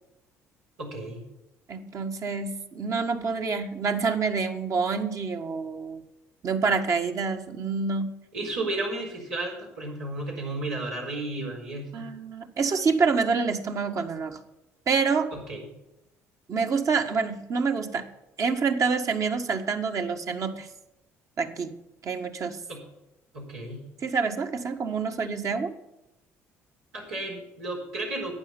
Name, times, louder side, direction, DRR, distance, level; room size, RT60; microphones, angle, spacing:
voice 1, 0.8-1.3 8.3-12.1 15.3-15.7 22.7-22.8 23.3-23.8 26.9-28.3, right 2 dB, 85° right, -3 dB, 4.3 m, -33 dB
voice 2, 1.7-6.0 6.4-8.2 11.9-14.4 14.9-15.3 16.5-18.1 18.4-20.7 21.4-21.7 22.0-22.6 24.0-25.7, right 5 dB, 45° right, 5 dB, 1.7 m, -27 dB
11.5 x 8.8 x 7.1 m, 0.92 s
hypercardioid pair, 55°, 7 cm